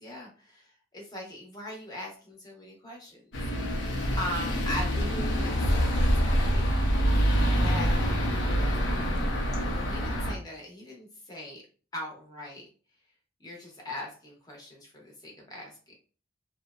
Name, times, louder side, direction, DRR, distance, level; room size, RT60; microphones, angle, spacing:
voice 1, 0.0-3.3 4.2-6.7 7.5-8.4 9.6-11.6 11.9-12.7 13.4-16.0, left 1 dB, 20° left, -2 dB, 0.8 m, -40 dB
sound 1, 3.3-10.4, equal, 80° left, 0.6 m, -26 dB
2.7 x 2.0 x 2.3 m, 0.38 s
head